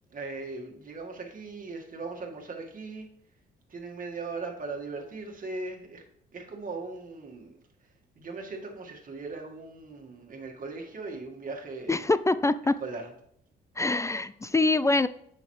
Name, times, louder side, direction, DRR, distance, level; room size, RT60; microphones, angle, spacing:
voice 1, 0.1-3.1 3.7-6.0 6.3-7.5 8.1-12.1 12.6-13.1, right 3 dB, 45° right, 1 dB, 1.7 m, -39 dB
voice 2, 11.9-12.8 13.8-15.1, left 2 dB, 15° left, 15 dB, 0.3 m, -24 dB
8.0 x 5.7 x 3.1 m, 0.68 s
supercardioid pair, 60°, 20 cm